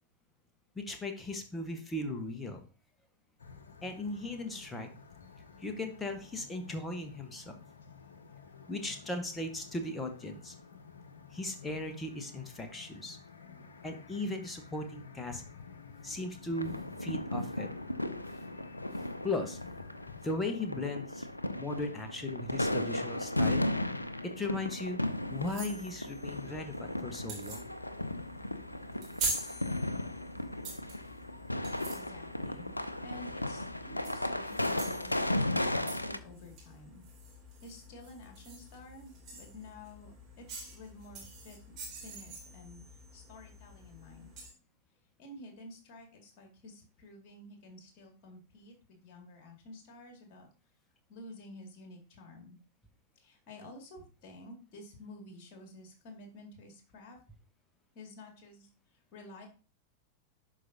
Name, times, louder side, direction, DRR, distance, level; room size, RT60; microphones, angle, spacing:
voice 1, 0.7-2.6 3.8-4.9 5.6-7.5 8.7-10.5 11.3-13.2 13.8-15.4 16.0-17.7 19.2-19.6 20.2-23.7 24.4-25.0 25.3-27.6, left 2 dB, 10° left, 4 dB, 1.2 m, -37 dB
sound 1, 3.4-20.2, left 5 dB, 70° left, 0.8 m, -52 dB
sound 2, 16.5-36.2, left 1 dB, 85° left, 0.4 m, -35 dB
sound 3, 25.0-44.5, right 2 dB, 35° right, 3.0 m, -45 dB
voice 2, 31.9-32.7 33.0-37.0 37.6-41.6 42.0-44.3 45.2-50.5 51.1-52.6 53.2-57.2 57.9-59.5, left 1 dB, 40° left, 3 dB, 2.2 m, -51 dB
11.5 x 4.7 x 2.7 m, 0.35 s
figure-of-eight pair, 90°, 0 cm